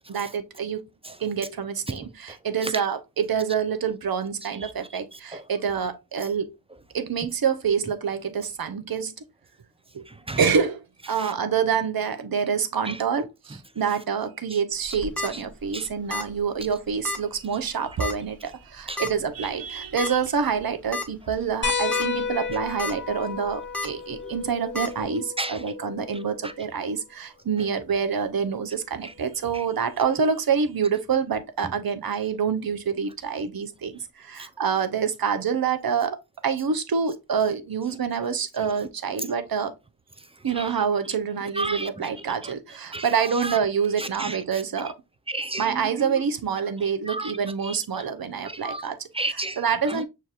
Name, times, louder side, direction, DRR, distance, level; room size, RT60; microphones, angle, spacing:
voice 1, 0.1-0.8 1.2-6.5 6.9-9.1 9.9-10.0 10.4-36.2 36.4-39.7 40.4-44.9 45.6-49.1 49.6-50.0, right 6 dB, 60° right, 0.7 m, -27 dB
voice 2, 5.1-5.4 10.1-10.4 11.2-11.3 12.9-13.0 15.3-15.4 15.7-15.9 18.9-19.0 24.2-24.3 25.4-25.6 26.4-26.5 29.0-29.1 29.5-29.6 34.4-34.5 40.5-40.7 41.5-41.9 42.4-42.5 42.9-43.6 44.0-44.6 45.3-46.2 47.1-47.3 47.6-48.0 48.4-48.9 49.1-50.0, right 2 dB, 15° right, 0.5 m, -33 dB
sound 1, 14.8-15.3 16.1-16.4 16.6-16.7 17.0-17.2 18.0-18.3 19.0-19.1 20.0-20.1 20.6-20.7 20.9-21.0 21.7-22.0 22.5-22.9 23.7-23.9 24.7-24.9, left 3 dB, 5° left, 0.9 m, -30 dB
sound 2, 21.6-26.7 28.2-28.3 30.0-30.1, left 5 dB, 25° left, 1.1 m, -32 dB
6.3 x 2.9 x 2.4 m
cardioid pair, 40°, 42 cm